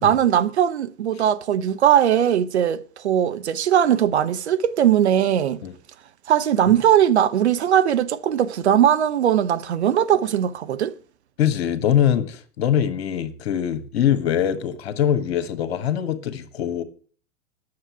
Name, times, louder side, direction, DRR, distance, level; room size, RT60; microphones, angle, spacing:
voice 1, 0.0-5.6 6.3-10.9, right 10 dB, 65° right, 0.9 m, -19 dB
voice 2, 11.4-16.8, left 9 dB, 60° left, 1.4 m, -23 dB
9.6 x 6.6 x 8.2 m
figure-of-eight pair, 95°, 36 cm